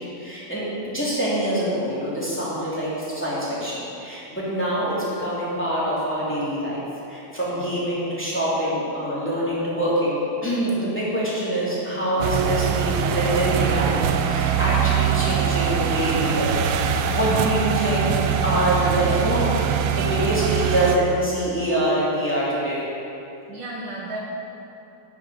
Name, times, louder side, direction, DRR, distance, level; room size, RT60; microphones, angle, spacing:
voice 1, 0.0-6.8 7.1-18.1 18.4-19.5 19.9-22.8, right 1 dB, 5° left, -9 dB, 2.6 m, -25 dB
sound 1, 12.2-21.0, right 8 dB, 90° right, 1.6 m, -23 dB
voice 2, 18.7-19.2 23.5-24.2, right 2 dB, 60° right, -4 dB, 1.9 m, -34 dB
11.0 x 6.3 x 6.4 m, 2.8 s
omnidirectional pair, 2.4 m